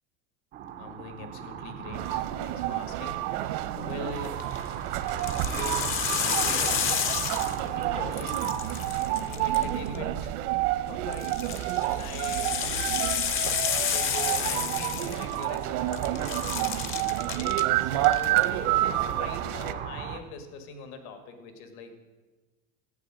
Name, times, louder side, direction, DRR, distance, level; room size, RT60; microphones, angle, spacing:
sound 1, 0.5-20.2, right 9 dB, 25° right, 0.4 m, -39 dB
voice 1, 0.8-4.7 5.5-6.8 7.1-8.5 9.0-10.4 10.9-11.3 11.8-13.0 13.7-16.4 16.9-17.2 17.8-22.0, left 4 dB, 75° left, 8 dB, 2.0 m, -42 dB
sound 2, 1.9-19.7, right 14 dB, 70° right, 0.9 m, -29 dB
sound 3, 4.2-4.6 5.1-7.8 8.1-10.0 11.1-15.6 15.9-17.6 18.0-18.4, left 8 dB, 30° left, 0.6 m, -31 dB
14.5 x 8.9 x 7.7 m, 1.3 s
cardioid pair, 175°, 46 cm